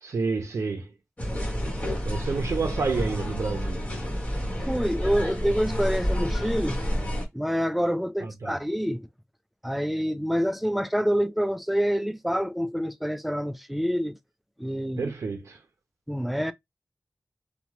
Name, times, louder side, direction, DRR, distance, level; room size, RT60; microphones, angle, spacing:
voice 1, 0.0-0.9 2.0-3.8 8.2-8.5 15.0-15.6, right 4 dB, 90° right, 0.4 m, -29 dB
sound 1, 1.2-7.3, equal, 30° left, 1.3 m, -29 dB
voice 2, 4.7-6.8 7.3-9.1 9.6-14.2 14.6-15.1 16.1-16.5, equal, ahead, 0.3 m, -27 dB
2.8 x 2.1 x 2.9 m
wide cardioid pair, 80°, 5 cm